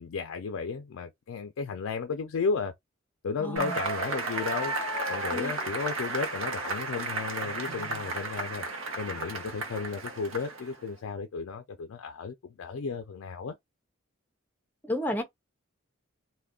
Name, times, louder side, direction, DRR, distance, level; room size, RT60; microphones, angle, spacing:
voice 1, 0.0-2.7 3.2-4.7 5.1-8.6 9.0-13.6, left 5 dB, 75° left, 0.4 m, -34 dB
voice 2, 3.4-3.8 5.3-5.5 14.9-15.2, left 1 dB, 10° left, 0.5 m, -31 dB
Cheering / Applause / Crowd, 3.6-10.8, right 3 dB, 70° right, 0.8 m, -33 dB
2.3 x 2.1 x 3.5 m
head